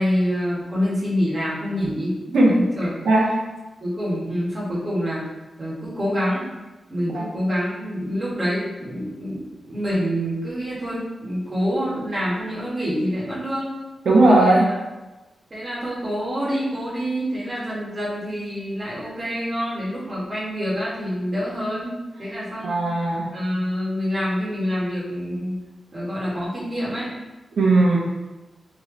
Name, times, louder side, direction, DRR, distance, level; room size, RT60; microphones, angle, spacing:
voice 1, 0.0-2.2 2.5-2.9 3.8-5.2 5.6-6.5 6.9-13.7 14.3-14.6 15.5-22.7 23.3-25.6 25.9-27.1, equal, 30° right, -8 dB, 1.2 m, -26 dB
voice 2, 14.1-14.7 22.6-23.3 27.6-28.0, right 2 dB, 75° right, -3 dB, 0.7 m, -17 dB
3.2 x 2.8 x 3.7 m, 1.1 s
wide cardioid pair, 175°, 0 cm